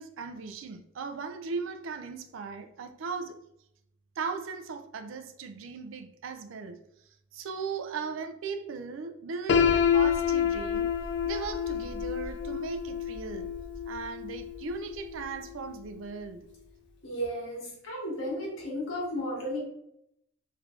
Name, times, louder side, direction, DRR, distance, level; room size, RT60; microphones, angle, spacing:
voice 1, 0.0-3.4 4.2-6.8 7.3-10.9 11.2-13.5 13.9-16.5, right 5 dB, 85° right, 0.4 m, -38 dB
Piano, 9.5-15.3, left 7 dB, 60° left, 0.4 m, -28 dB
voice 2, 17.0-19.6, equal, 85° left, 1.5 m, -34 dB
3.3 x 3.2 x 2.5 m
head